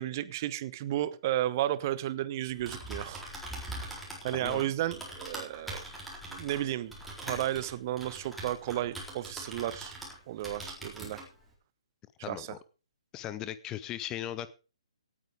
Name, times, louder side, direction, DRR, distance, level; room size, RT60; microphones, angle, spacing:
voice 1, 0.0-3.2 3.8-5.8 6.3-6.9 7.2-10.0 10.3-11.2 12.3-12.5, right 13 dB, 30° right, 0.9 m, -33 dB
Typing, 2.5-10.2 10.4-11.3, right 1 dB, ahead, 4.1 m, -42 dB
voice 2, 4.3-4.6 12.2-12.6 13.1-14.5, left 12 dB, 15° left, 0.6 m, -38 dB
17.5 x 9.0 x 4.9 m
figure-of-eight pair, 130°, 3 cm